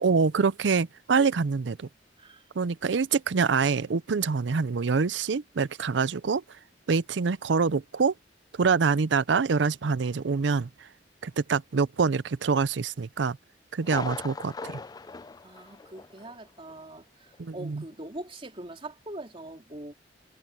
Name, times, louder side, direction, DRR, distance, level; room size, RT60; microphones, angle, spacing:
voice 1, 0.0-1.9 2.6-6.4 6.9-8.1 8.6-10.9 11.2-13.4 13.7-14.8 17.4-17.8, right 5 dB, 80° right, 0.5 m, -25 dB
Thunder, 13.8-16.4 16.7-16.8 17.3-17.4, left 4 dB, 20° left, 0.4 m, -40 dB
voice 2, 15.4-19.9, right 1 dB, 30° right, 3.2 m, -42 dB
head